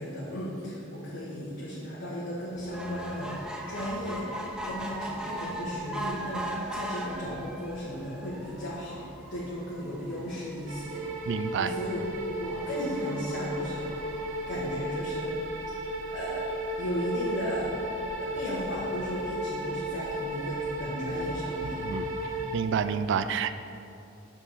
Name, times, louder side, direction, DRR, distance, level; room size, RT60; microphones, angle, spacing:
voice 1, 0.0-9.0 9.3-11.0 11.5-14.1 14.5-15.3 16.1-16.4 16.8-17.7 18.2-21.8, equal, 65° left, -8 dB, 1.5 m, -35 dB
sound 1, 2.5-22.4, equal, 45° left, 1.8 m, -49 dB
sound 2, 2.7-15.3 15.9-16.0 16.3-16.4 16.6-16.7, right 1 dB, 5° right, 0.6 m, -40 dB
sound 3, 10.7-22.5, right 1 dB, 80° right, 1.0 m, -34 dB
voice 2, 11.3-11.7 21.8-22.0 22.5-23.6, right 7 dB, 65° right, 11 dB, 0.3 m, -28 dB
7.1 x 4.5 x 6.9 m, 2.6 s
head